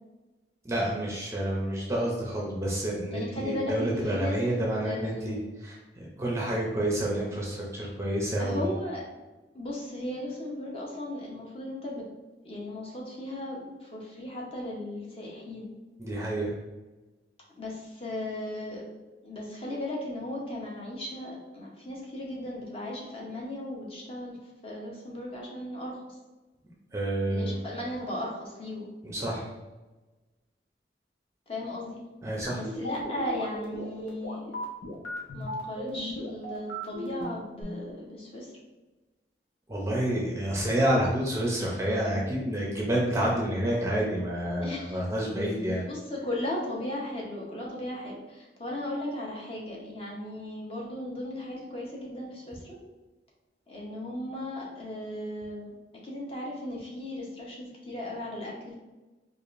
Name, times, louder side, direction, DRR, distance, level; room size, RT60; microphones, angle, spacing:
voice 1, 0.6-8.6 16.0-16.5 26.9-27.6 29.0-29.5 32.2-32.6 39.7-45.8, right 1 dB, 15° right, -3 dB, 0.5 m, -29 dB
voice 2, 3.1-4.6 4.8-5.6 8.4-9.1 9.5-12.0 12.4-15.7 17.6-18.8 19.2-24.4 24.6-26.2 27.3-28.9 31.5-32.0 32.5-34.6 35.3-38.5 44.6-45.0 45.8-52.8 53.7-55.8 56.0-58.7, left 1 dB, 30° left, -3 dB, 0.8 m, -36 dB
sound 1, 32.4-37.6, equal, 85° left, 0.9 m, -36 dB
4.8 x 2.5 x 2.5 m, 1.2 s
head